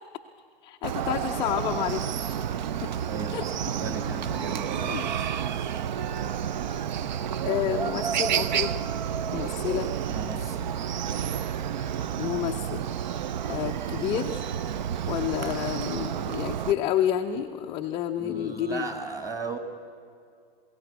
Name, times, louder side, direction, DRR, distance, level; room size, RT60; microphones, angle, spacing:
voice 1, 0.6-2.3 2.8-2.9 3.3-3.4 4.8-5.0 7.4-8.8 9.3-9.9 12.2-12.8 13.5-14.4 15.1-18.9, left 11 dB, 15° left, 3 dB, 0.4 m, -29 dB
Chicken rooster, 0.8-16.7, right 9 dB, 50° right, 0.6 m, -30 dB
voice 2, 3.0-5.0 10.1-10.8 18.2-19.6, right 3 dB, 10° right, 7 dB, 1.5 m, -36 dB
21.5 x 17.0 x 8.0 m, 2.2 s
figure-of-eight pair, 105°, 30 cm